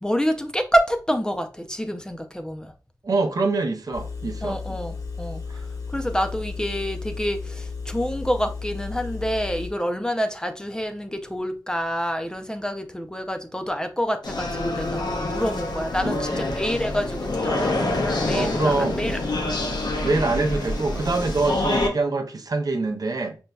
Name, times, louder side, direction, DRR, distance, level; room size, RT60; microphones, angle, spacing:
voice 1, 0.0-2.7 4.4-19.7, equal, 10° left, 0.4 m, -27 dB
voice 2, 3.0-4.6 5.5-5.6 16.0-16.4 18.3-19.0 20.0-23.4, right 3 dB, 60° right, 0.5 m, -25 dB
Engine, 3.9-9.7, left 4 dB, 50° left, 0.8 m, -34 dB
sound 1, 14.2-21.9, left 2 dB, 85° left, 0.6 m, -26 dB
5.1 x 2.1 x 2.2 m
wide cardioid pair, 90°, 7 cm